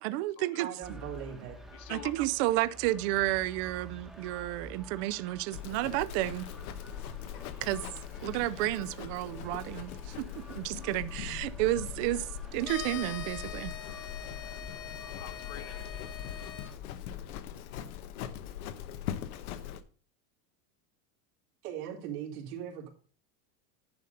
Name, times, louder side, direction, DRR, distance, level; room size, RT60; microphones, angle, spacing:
voice 1, 0.0-0.7 1.9-6.5 7.6-7.8 8.2-12.3 12.5-13.8, right 16 dB, 50° right, 0.5 m, -31 dB
voice 2, 0.6-1.6 21.6-22.9, right 9 dB, 90° right, 2.7 m, -39 dB
sound 1, 0.8-16.8, right 1 dB, ahead, 1.0 m, -50 dB
voice 3, 1.7-2.1 14.7-16.2, left 11 dB, 35° left, 0.6 m, -48 dB
Livestock farm animals working animals, 5.5-19.8, left 10 dB, 85° left, 1.1 m, -41 dB
sound 2, 12.6-16.7, left 9 dB, 65° left, 1.7 m, -43 dB
10.5 x 4.0 x 6.6 m
supercardioid pair, 160°, 43 cm